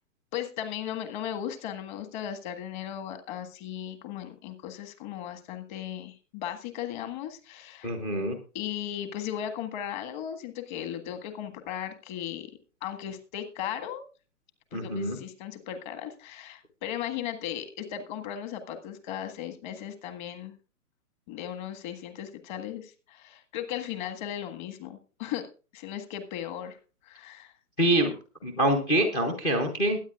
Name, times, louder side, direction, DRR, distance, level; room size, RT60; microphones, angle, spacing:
voice 1, 0.3-7.9 8.5-12.5 12.8-14.0 14.7-20.6 21.3-25.5 25.7-26.8 27.0-27.5, left 10 dB, 30° left, 7 dB, 1.7 m, -36 dB
voice 2, 7.8-8.4 14.7-15.2 27.8-28.1 28.4-30.0, right 1 dB, 10° left, 5 dB, 0.5 m, -25 dB
21.5 x 9.3 x 2.4 m, 0.35 s
hypercardioid pair, 135°, 45 cm